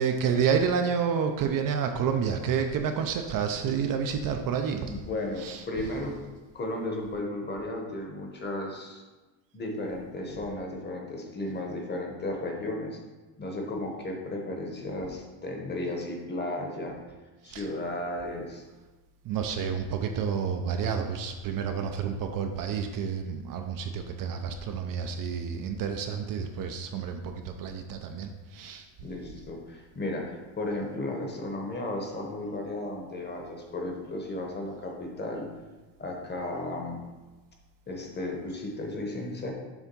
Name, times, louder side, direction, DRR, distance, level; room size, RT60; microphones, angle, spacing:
voice 1, 0.0-4.9 5.4-5.6 17.5-17.6 19.3-28.8, right 7 dB, 45° right, 5 dB, 0.6 m, -29 dB
voice 2, 4.8-6.2 6.5-9.0 9.5-13.0 13.4-17.0 17.4-18.6 29.0-35.5 36.0-37.0 37.9-39.5, left 1 dB, 25° left, 1 dB, 1.0 m, -34 dB
7.2 x 3.5 x 5.3 m, 1.2 s
cardioid pair, 140°, 45 cm